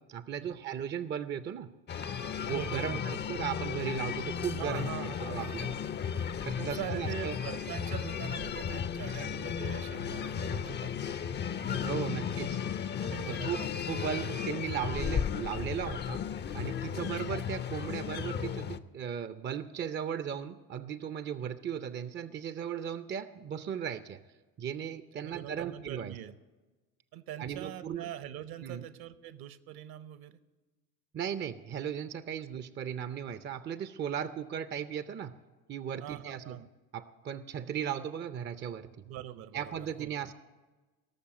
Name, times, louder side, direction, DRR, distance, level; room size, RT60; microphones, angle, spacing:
voice 1, 0.0-1.7 2.4-4.9 5.2-5.8 6.4-7.4 11.8-12.6 13.2-16.2 16.5-24.2 24.6-26.2 27.4-28.1 28.6-28.9 31.1-35.3 35.7-36.6 36.9-38.9 39.5-40.3, right 8 dB, 25° right, 13 dB, 0.5 m, -37 dB
sound 1, 1.9-18.8, left 7 dB, 25° left, 0.5 m, -35 dB
voice 2, 2.5-3.2 4.6-5.7 6.6-11.1 11.6-12.2 13.0-13.7 25.1-26.3 27.1-30.4 36.0-36.7 39.0-40.3, right 11 dB, 50° right, 15 dB, 0.9 m, -43 dB
17.5 x 6.8 x 7.7 m, 1.2 s
hypercardioid pair, 70°, 47 cm